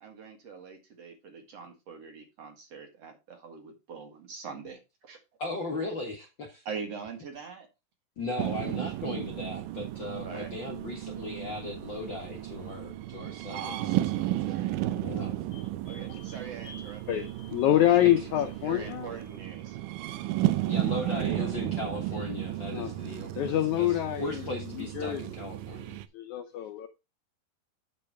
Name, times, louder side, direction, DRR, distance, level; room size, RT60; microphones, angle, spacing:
voice 1, 0.0-5.2 6.7-7.7 10.2-10.5 13.5-14.0 14.4-14.8 15.9-17.3 17.6-17.9 18.6-19.8, right 5 dB, 50° right, 2.5 m, -43 dB
voice 2, 5.4-6.6 8.2-14.3 14.9-15.3 18.0-18.1 20.7-26.0, left 2 dB, 50° left, 1.5 m, -37 dB
sound 1, 8.4-26.1, right 15 dB, 80° right, 2.2 m, -33 dB
voice 3, 15.9-16.3 16.6-19.1 21.1-21.5 22.7-22.9 23.4-24.4 25.0-25.2 26.1-26.9, left 13 dB, 75° left, 1.8 m, -27 dB
8.6 x 5.5 x 4.6 m
omnidirectional pair, 4.0 m